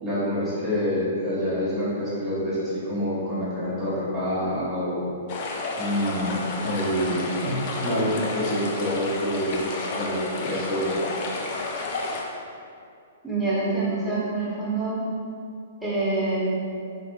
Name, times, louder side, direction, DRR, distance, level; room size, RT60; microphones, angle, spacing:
voice 1, 0.0-5.0 5.8-9.6 9.9-11.0, equal, 20° right, -12 dB, 1.0 m, -27 dB
sound 1, 5.3-12.2, left 3 dB, 40° left, 0.5 m, -31 dB
voice 2, 13.2-15.0 15.8-16.4, right 3 dB, ahead, -11 dB, 1.2 m, -26 dB
4.2 x 3.1 x 3.0 m, 2.4 s
figure-of-eight pair, 110°, 0 cm